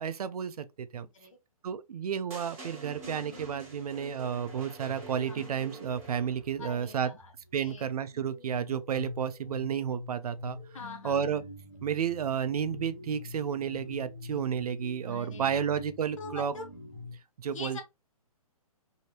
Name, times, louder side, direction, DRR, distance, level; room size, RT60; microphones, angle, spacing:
voice 1, 0.0-1.1 1.6-7.1 7.5-10.6 11.0-11.4 11.8-16.5 17.4-17.8, right 8 dB, 75° right, 0.4 m, -32 dB
voice 2, 1.0-1.4 3.0-3.5 5.3-5.4 6.6-7.3 7.6-7.9 10.7-11.3 15.1-15.7 16.2-16.7 17.5-17.8, left 3 dB, 60° left, 1.0 m, -44 dB
sound 1, 2.3-6.6, right 3 dB, 20° right, 1.2 m, -47 dB
sound 2, 2.9-17.2, left 2 dB, 10° left, 1.3 m, -47 dB
2.8 x 2.8 x 3.0 m
hypercardioid pair, 175°, 19 cm